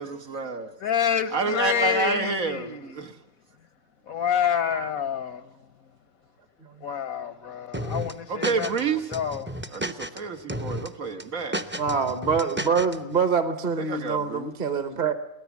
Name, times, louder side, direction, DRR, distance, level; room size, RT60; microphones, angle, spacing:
voice 1, 0.0-0.7 1.3-3.1 8.3-9.0 9.7-11.6 13.8-14.5, right 5 dB, 75° right, 2.0 m, -29 dB
voice 2, 0.8-3.1 4.1-5.7 6.8-9.6, left 8 dB, 85° left, 1.6 m, -28 dB
voice 3, 4.4-5.1 11.7-15.1, right 5 dB, 35° right, 1.2 m, -26 dB
sound 1, 7.7-8.8 9.1-10.2 10.5-10.9 11.2-13.0, equal, 10° right, 0.6 m, -32 dB
24.0 x 18.5 x 7.3 m
omnidirectional pair, 1.4 m